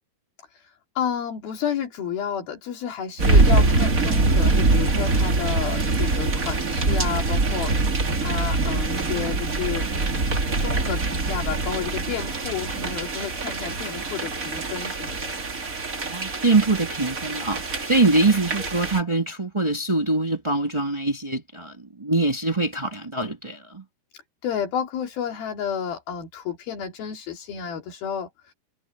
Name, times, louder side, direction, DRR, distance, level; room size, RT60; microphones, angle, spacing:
voice 1, 1.0-7.7 8.2-9.9 10.6-15.3 17.3-17.4 24.4-28.5, left 8 dB, 80° left, 4.2 m, -31 dB
sound 1, 3.2-19.0, right 3 dB, 25° right, 2.2 m, -24 dB
voice 2, 16.0-21.7 22.0-23.8, right 2 dB, 50° right, 0.3 m, -23 dB
omnidirectional pair, 4.2 m